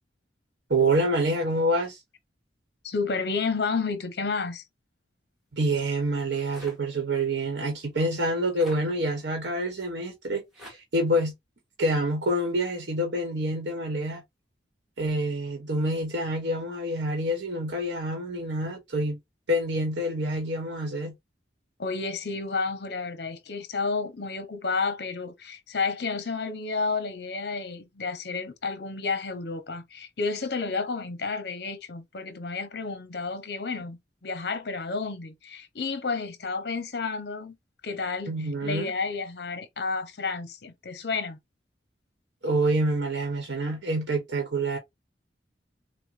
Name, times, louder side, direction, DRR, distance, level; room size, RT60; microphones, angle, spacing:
voice 1, 0.7-2.0 5.5-11.3 11.8-14.2 15.0-19.2 19.5-21.1 38.3-38.9 42.4-44.8, right 1 dB, 80° right, 1.0 m, -27 dB
voice 2, 2.8-4.6 21.8-37.6 37.8-38.3 38.6-41.4, left 4 dB, 60° left, 0.7 m, -31 dB
sound 1, 6.5-6.8 8.5-8.8 10.5-10.8, left 1 dB, ahead, 2.0 m, -44 dB
6.0 x 2.1 x 2.5 m
head